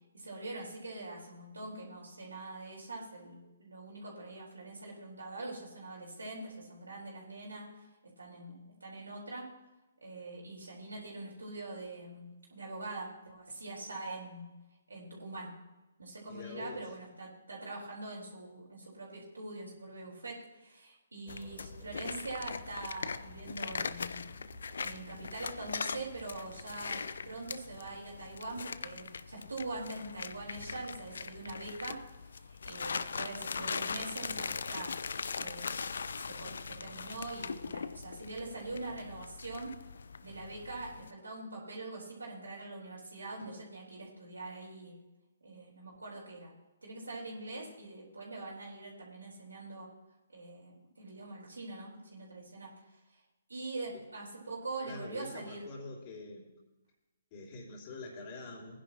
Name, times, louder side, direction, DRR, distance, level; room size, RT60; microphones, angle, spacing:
voice 1, 0.1-9.5 10.0-14.5 14.9-15.5 16.0-24.2 24.8-32.0 32.3-35.0 35.3-35.7 36.3-39.7 40.2-45.0 45.4-46.5 46.8-49.9 50.3-52.7 53.5-55.7, right 2 dB, 85° right, -4 dB, 4.2 m, -43 dB
voice 2, 16.3-16.9 54.8-56.6 57.3-58.8, left 3 dB, 35° left, -7 dB, 3.2 m, -45 dB
sound 1, 21.3-41.1, left 5 dB, 70° left, 0.5 m, -41 dB
Race car auto racing, 21.3-26.8, right 1 dB, 15° right, 3.5 m, -58 dB
19.5 x 10.5 x 2.9 m, 1.1 s
figure-of-eight pair, 135°, 0 cm